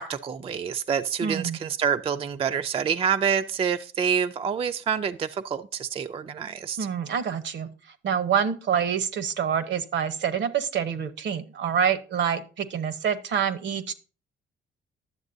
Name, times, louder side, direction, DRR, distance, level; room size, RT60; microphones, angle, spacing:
voice 1, 0.0-6.8, right 7 dB, 30° right, 0.3 m, -27 dB
voice 2, 1.2-1.6 6.8-13.9, right 8 dB, 65° right, 0.8 m, -27 dB
11.0 x 7.2 x 2.6 m
cardioid pair, 90°, 20 cm